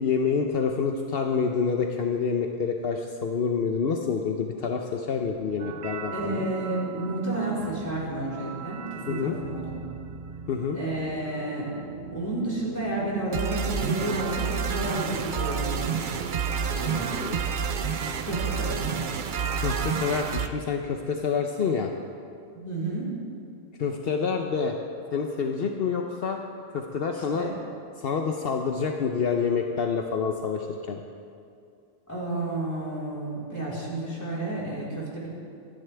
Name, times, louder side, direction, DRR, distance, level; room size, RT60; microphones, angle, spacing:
voice 1, 0.0-6.4 9.1-9.3 10.5-10.8 17.3-17.4 19.6-21.9 23.8-24.8 25.1-26.4 26.7-27.5 28.0-31.0, left 5 dB, 70° left, 3 dB, 1.0 m, -27 dB
sound 1, 5.6-20.5, right 6 dB, 55° right, 0.7 m, -31 dB
voice 2, 6.1-10.0 10.7-11.7 12.1-16.2 16.7-17.1 18.2-18.9 22.5-23.1 27.1-27.5 32.1-35.3, right 2 dB, 15° left, -7 dB, 4.2 m, -31 dB
26.5 x 11.0 x 3.4 m, 2.4 s
omnidirectional pair, 1.0 m